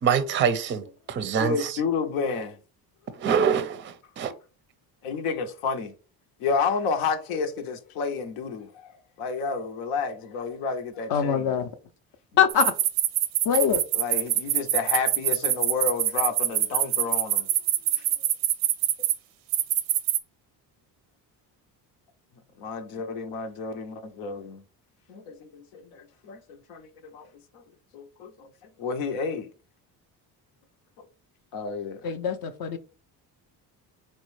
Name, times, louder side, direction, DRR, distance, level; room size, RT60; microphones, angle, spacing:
voice 1, 0.0-1.8 3.2-4.3, right 7 dB, 25° right, 0.4 m, -25 dB
voice 2, 1.2-2.6 5.0-5.9 6.4-8.9 9.2-11.5 13.9-17.5 17.9-18.1 22.6-24.6 25.1-27.3 27.5-27.6 27.9-28.5 28.8-29.5 31.5-32.0, left 5 dB, 85° left, 0.7 m, -30 dB
voice 3, 11.1-11.7 12.4-12.7 13.5-13.8 32.0-32.8, left 8 dB, 50° left, 0.5 m, -23 dB
sound 1, 12.5-19.1 19.5-20.2, right 13 dB, 85° right, 0.6 m, -24 dB
3.9 x 2.1 x 3.0 m
supercardioid pair, 65°, 48 cm